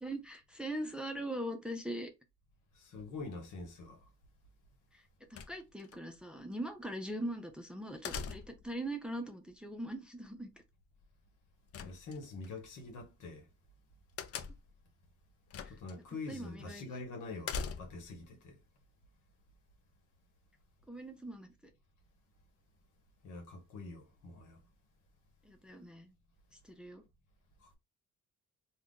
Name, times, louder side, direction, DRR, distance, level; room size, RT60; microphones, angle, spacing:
voice 1, 0.0-2.1 4.9-5.0 5.3-10.5 15.6-15.8 16.3-16.8 20.9-21.5 25.4-26.1 26.6-27.0, right 1 dB, 5° right, 0.6 m, -41 dB
voice 2, 2.7-4.0 11.8-13.4 15.7-18.6 23.2-24.6 27.6-27.8, left 3 dB, 80° left, 1.1 m, -45 dB
sound 1, 5.3-6.0 8.0-8.7 11.7-12.5 14.2-14.8 15.5-15.9 16.3-16.4 17.4-18.1, left 6 dB, 50° left, 0.5 m, -41 dB
2.5 x 2.4 x 3.6 m
cardioid pair, 90°, 30 cm